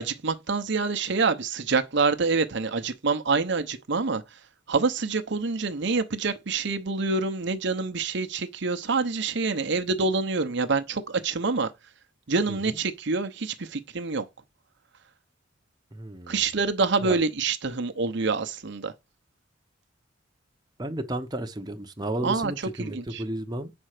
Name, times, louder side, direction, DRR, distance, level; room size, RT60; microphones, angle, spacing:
voice 1, 0.0-4.2 4.7-11.7 12.3-14.2 16.3-18.9 22.2-22.5 22.8-23.2, right 4 dB, 60° right, 0.8 m, -26 dB
voice 2, 15.9-16.4 17.0-17.2 20.8-23.7, right 1 dB, 20° right, 0.8 m, -33 dB
8.6 x 4.4 x 6.5 m
head